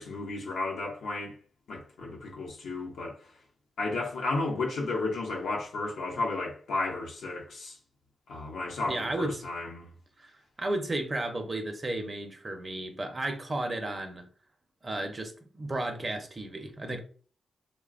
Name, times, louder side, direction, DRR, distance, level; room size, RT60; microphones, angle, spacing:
voice 1, 0.0-1.3 1.7-3.2 3.8-7.8 8.3-9.9, left 3 dB, 80° left, 0.7 m, -33 dB
voice 2, 8.9-9.4 10.2-10.3 10.6-14.3 14.8-17.0, right 1 dB, 35° right, 0.6 m, -33 dB
3.0 x 2.2 x 2.5 m
cardioid pair, 60°, 0 cm